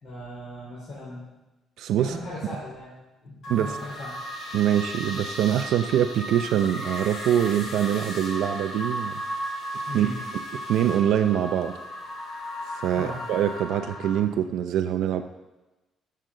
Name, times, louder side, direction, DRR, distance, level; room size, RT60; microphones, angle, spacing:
voice 1, 0.0-1.3 2.0-2.9 3.2-4.1 9.9-10.2 13.0-13.2, left 1 dB, 45° left, -8 dB, 4.0 m, -37 dB
voice 2, 1.8-2.2 3.5-3.8 4.5-9.2 9.9-10.1 10.5-11.8 12.7-15.2, right 10 dB, 75° right, 7 dB, 0.5 m, -24 dB
sound 1, 3.4-14.2, equal, 60° left, 2.6 m, -35 dB
14.5 x 7.6 x 3.8 m, 1.1 s
cardioid pair, 170°, 0 cm